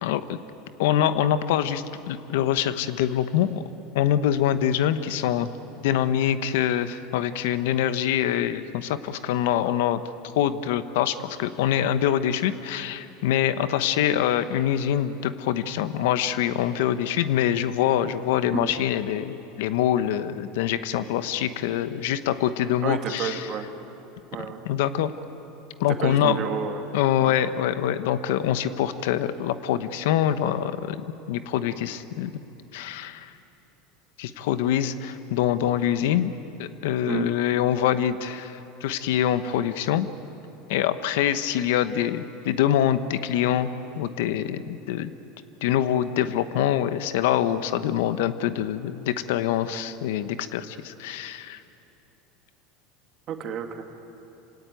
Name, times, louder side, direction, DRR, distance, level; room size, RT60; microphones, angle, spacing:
voice 1, 0.0-0.4 0.8-3.6 3.9-5.5 5.8-10.0 10.4-23.5 24.6-25.1 25.8-26.4 26.9-32.4 32.7-33.3 34.2-36.3 36.6-40.1 40.7-45.1 45.6-51.6, left 10 dB, 80° left, 12 dB, 1.0 m, -25 dB
voice 2, 22.8-23.7 24.3-24.6 26.0-26.8 27.2-27.3 37.1-37.3 53.3-53.8, right 7 dB, 45° right, 5 dB, 2.2 m, -30 dB
27.0 x 17.5 x 9.2 m, 3.0 s
supercardioid pair, 125°, 0 cm